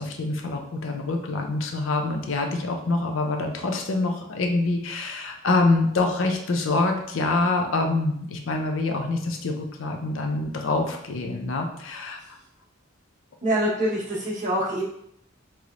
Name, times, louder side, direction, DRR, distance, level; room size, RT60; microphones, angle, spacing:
voice 1, 0.0-12.4, left 2 dB, 75° left, 3 dB, 0.5 m, -25 dB
voice 2, 13.4-14.8, equal, 40° right, -7 dB, 1.2 m, -25 dB
3.1 x 3.0 x 2.5 m, 0.72 s
head